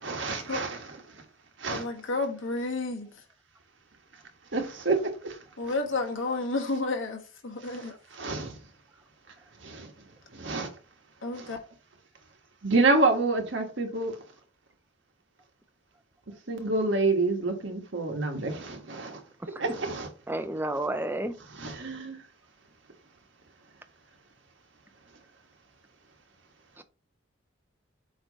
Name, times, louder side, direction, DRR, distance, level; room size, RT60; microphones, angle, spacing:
voice 1, 0.0-0.8 1.6-1.8 4.5-5.4 7.6-8.6 9.6-9.9 10.3-10.7 11.3-11.5 12.6-14.2 16.5-19.2 19.6-20.1 21.6-22.2, right 3 dB, 70° right, 1.5 m, -28 dB
voice 2, 1.7-3.1 5.6-7.9 11.2-11.6, left 3 dB, 80° left, 1.5 m, -31 dB
voice 3, 20.3-21.3 26.8-26.9, right 1 dB, 10° right, 0.5 m, -31 dB
7.9 x 3.0 x 4.0 m
head